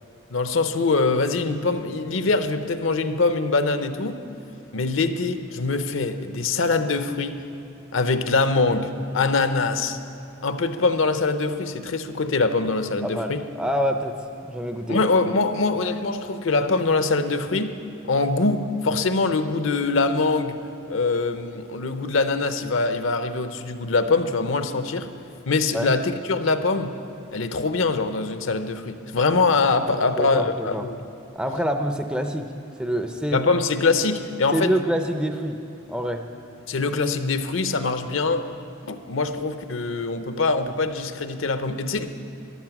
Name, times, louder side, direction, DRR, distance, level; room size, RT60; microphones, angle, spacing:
voice 1, 0.3-4.2 4.7-7.4 7.9-10.0 10.4-13.4 14.9-17.7 18.1-20.6 20.9-25.1 25.5-26.9 27.3-31.0 33.3-34.7 36.7-38.5 38.8-42.1, left 3 dB, 65° left, 10 dB, 0.7 m, -23 dB
voice 2, 13.0-14.2 14.5-15.0 25.7-25.9 29.9-30.8 31.4-32.5 32.8-33.4 34.5-35.6 35.9-36.2, equal, 5° right, 5 dB, 0.4 m, -26 dB
13.5 x 11.0 x 6.0 m, 2.8 s
head